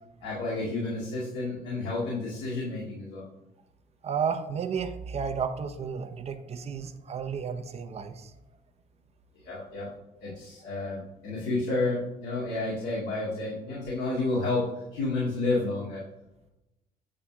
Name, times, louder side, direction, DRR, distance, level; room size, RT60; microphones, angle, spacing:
voice 1, 0.2-3.3 9.4-9.9 10.2-14.7 14.9-16.0, left 2 dB, 80° left, -6 dB, 2.3 m, -30 dB
voice 2, 4.0-8.3, right 6 dB, 40° right, 7 dB, 0.7 m, -32 dB
8.7 x 3.4 x 5.9 m, 0.93 s
cardioid pair, 110°, 17 cm